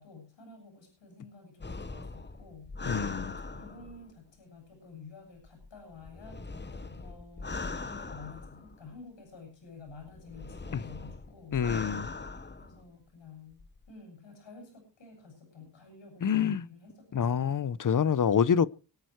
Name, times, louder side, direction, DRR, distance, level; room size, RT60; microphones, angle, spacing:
voice 1, 0.0-2.7 3.2-6.4 6.7-11.6 12.5-13.6 13.9-17.4, left 4 dB, 80° left, 7.4 m, -50 dB
sound 1, 1.6-4.1 5.4-9.0 9.9-12.8 13.5-13.9, left 3 dB, 25° left, 1.1 m, -41 dB
voice 2, 2.9-3.3 10.7-10.8 11.5-12.1 16.2-16.6 17.1-18.7, left 7 dB, 45° left, 0.8 m, -26 dB
23.5 x 9.1 x 4.7 m
cardioid pair, 75°, 44 cm